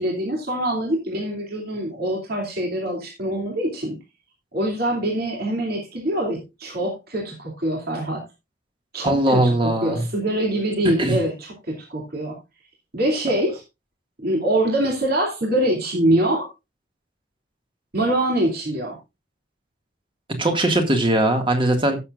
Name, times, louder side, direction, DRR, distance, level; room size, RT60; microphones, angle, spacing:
voice 1, 0.0-4.0 4.5-8.2 8.9-12.4 12.9-13.6 14.2-16.5 17.9-19.0, right 1 dB, 50° right, -1 dB, 2.5 m, -24 dB
voice 2, 9.0-10.1 10.8-11.2 20.4-22.0, right 1 dB, 25° right, 5 dB, 1.8 m, -20 dB
17.0 x 6.8 x 2.4 m, 0.24 s
head